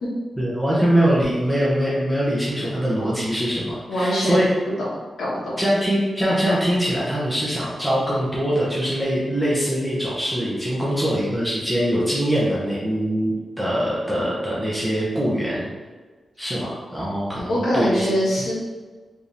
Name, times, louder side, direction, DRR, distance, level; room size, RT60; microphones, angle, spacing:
voice 1, 0.4-4.5 5.6-15.7 16.4-18.1, equal, 5° right, -8 dB, 1.0 m, -23 dB
voice 2, 3.9-4.5 5.2-5.5 17.5-18.5, equal, 85° left, -9 dB, 1.4 m, -22 dB
4.4 x 3.4 x 2.7 m, 1.4 s
wide cardioid pair, 110°, 0 cm